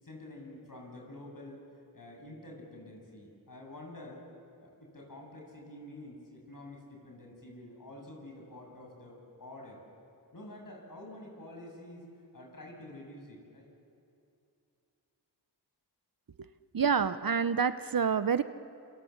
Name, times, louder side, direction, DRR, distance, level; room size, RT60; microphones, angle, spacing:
voice 1, 0.0-1.6 1.9-4.3 4.6-9.8 10.3-12.1 12.3-13.7, left 1 dB, 45° left, 0 dB, 7.8 m, -48 dB
voice 2, 16.7-18.4, right 6 dB, 50° right, 12 dB, 0.8 m, -27 dB
27.5 x 26.5 x 7.3 m, 2.6 s
cardioid pair, 60°, 44 cm